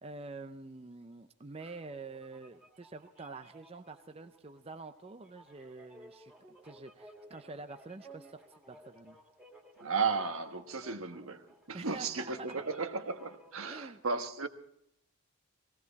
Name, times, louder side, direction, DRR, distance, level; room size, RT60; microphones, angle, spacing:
voice 1, 0.0-6.3 6.6-9.2 11.7-12.5 13.7-14.0, right 3 dB, 25° right, 0.6 m, -47 dB
sound 1, 1.8-13.9, right 1 dB, 5° right, 2.0 m, -57 dB
voice 2, 9.8-14.5, right 4 dB, 80° right, 1.3 m, -35 dB
18.0 x 17.0 x 4.1 m
head